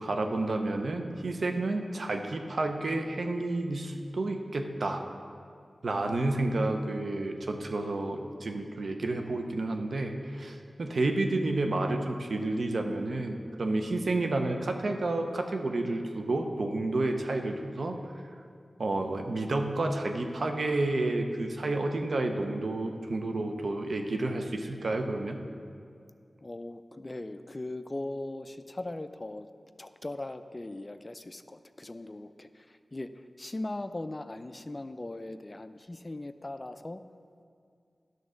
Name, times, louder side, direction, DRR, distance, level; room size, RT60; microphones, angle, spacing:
voice 1, 0.0-5.0 5.8-18.0 18.8-25.4, right 2 dB, 70° right, 4 dB, 0.7 m, -30 dB
voice 2, 26.4-29.5 29.8-33.1 33.4-37.0, left 2 dB, 35° left, 10 dB, 0.4 m, -39 dB
11.0 x 3.9 x 6.3 m, 2.3 s
cardioid pair, 50°, 0 cm